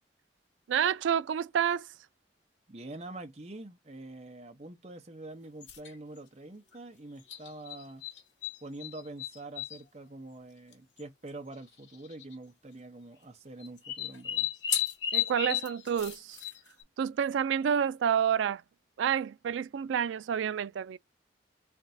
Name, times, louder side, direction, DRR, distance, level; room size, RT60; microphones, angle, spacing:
voice 1, 0.7-1.9 15.1-16.4 17.0-18.6 19.0-21.0, right 8 dB, 85° right, 0.3 m, -29 dB
voice 2, 2.7-8.0 8.6-14.5, right 2 dB, 35° right, 0.9 m, -45 dB
sound 1, 5.6-6.0 7.3-8.6 8.8-9.8 10.7-10.8 11.0-11.1 12.0-12.3 13.6-16.8, left 10 dB, 80° left, 1.5 m, -33 dB
3.9 x 3.4 x 2.6 m
head